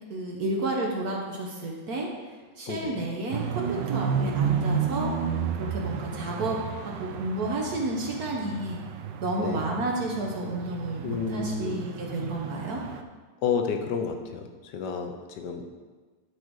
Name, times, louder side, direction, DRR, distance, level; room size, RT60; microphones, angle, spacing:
voice 1, 0.1-5.1 5.5-8.8 9.2-12.8, right 2 dB, 55° right, -1 dB, 1.4 m, -31 dB
voice 2, 2.7-3.1 9.4-9.7 11.0-11.8 13.4-15.6, left 6 dB, 70° left, 5 dB, 1.3 m, -31 dB
sound 1, 3.3-13.0, right 7 dB, 75° right, 1.2 m, -32 dB
11.5 x 3.9 x 4.7 m, 1.4 s
omnidirectional pair, 2.1 m